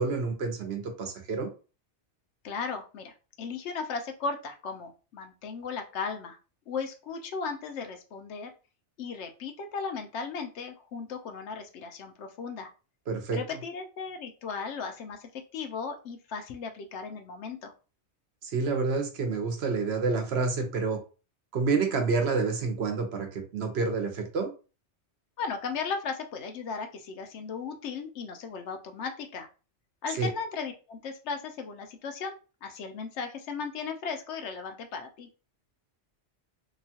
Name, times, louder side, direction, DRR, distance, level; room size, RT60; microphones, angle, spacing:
voice 1, 0.0-1.5 13.1-13.4 18.4-21.0 21.5-24.5 30.2-30.3, right 4 dB, 65° right, 5 dB, 0.9 m, -28 dB
voice 2, 2.4-6.4 6.7-8.5 9.0-12.7 13.3-17.7 25.4-29.5 30.0-32.4 32.6-35.3, left 5 dB, 80° left, 5 dB, 0.9 m, -36 dB
2.9 x 2.2 x 2.7 m, 0.33 s
omnidirectional pair, 1.2 m